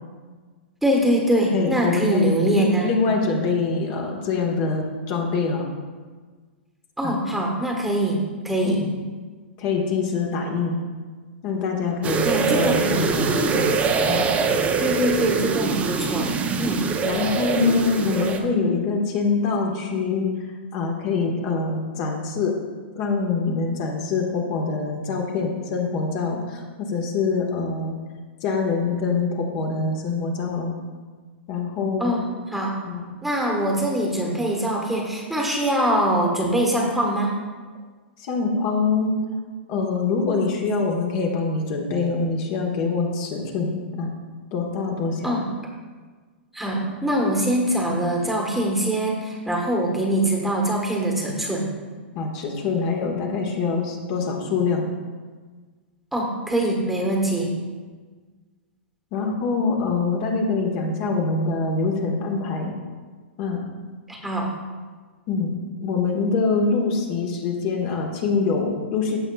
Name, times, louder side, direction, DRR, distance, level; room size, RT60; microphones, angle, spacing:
voice 1, 0.8-2.9 7.0-8.8 12.2-13.2 14.8-16.8 32.0-32.8 33.2-37.3 45.2-45.5 46.5-51.7 56.1-57.5 64.1-64.5, right 1 dB, 5° right, -1 dB, 1.3 m, -23 dB
voice 2, 1.5-5.6 7.0-7.1 8.6-8.9 9.6-10.8 11.4-13.7 14.1-14.3 17.0-22.5 22.9-28.0 28.4-30.7 31.5-32.2 32.9-33.1 38.2-39.1 39.7-44.1 44.5-45.4 46.7-46.9 49.9-50.0 52.1-54.9 59.1-62.7 63.4-63.7 65.3-69.2, left 4 dB, 45° left, 1 dB, 1.3 m, -24 dB
sound 1, 12.0-18.4, right 5 dB, 20° right, 0.7 m, -23 dB
15.0 x 5.5 x 2.3 m, 1.4 s
hypercardioid pair, 125°, 6 cm